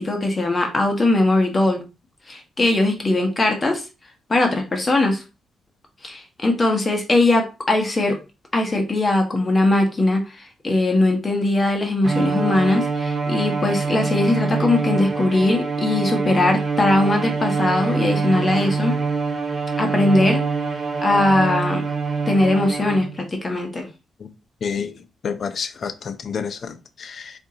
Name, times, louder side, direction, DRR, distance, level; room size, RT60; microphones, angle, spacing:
voice 1, 0.0-1.8 2.3-3.8 4.3-5.2 6.0-8.2 8.5-19.0 19.8-20.4 21.0-21.8 22.3-23.9, left 2 dB, 30° left, 0.9 m, -20 dB
Bowed string instrument, 12.0-23.3, right 4 dB, 45° right, 0.5 m, -24 dB
voice 2, 24.6-24.9 25.2-26.7 27.0-27.3, left 6 dB, 55° left, 0.5 m, -28 dB
4.4 x 2.5 x 2.7 m
cardioid pair, 85°, 0 cm